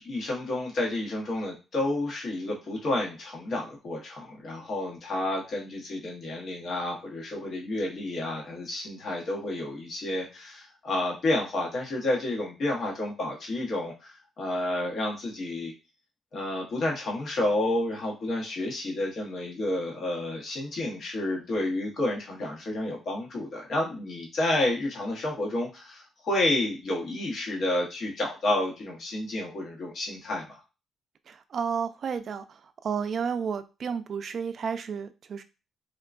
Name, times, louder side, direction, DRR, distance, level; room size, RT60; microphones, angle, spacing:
voice 1, 0.0-15.7 16.3-30.6, left 1 dB, 55° left, 1.0 m, -30 dB
voice 2, 31.3-35.4, right 6 dB, 55° right, 0.4 m, -32 dB
3.6 x 2.2 x 2.4 m
cardioid pair, 90°, 0 cm